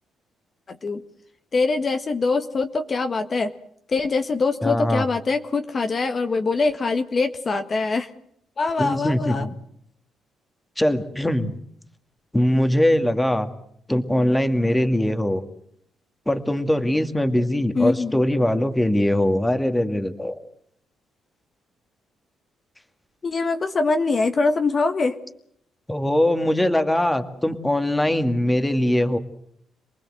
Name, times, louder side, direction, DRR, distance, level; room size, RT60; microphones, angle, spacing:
voice 1, 0.7-1.0 1.5-3.5 3.9-8.1 8.6-9.5 17.7-18.2 23.2-25.1, left 3 dB, 40° left, 6 dB, 1.7 m, -23 dB
voice 2, 4.6-5.0 8.8-9.5 10.8-11.5 12.3-13.5 13.9-15.4 16.3-20.4 25.9-29.2, left 1 dB, 10° left, 8 dB, 2.2 m, -21 dB
28.0 x 20.0 x 7.9 m, 0.69 s
cardioid pair, 90°, 0 cm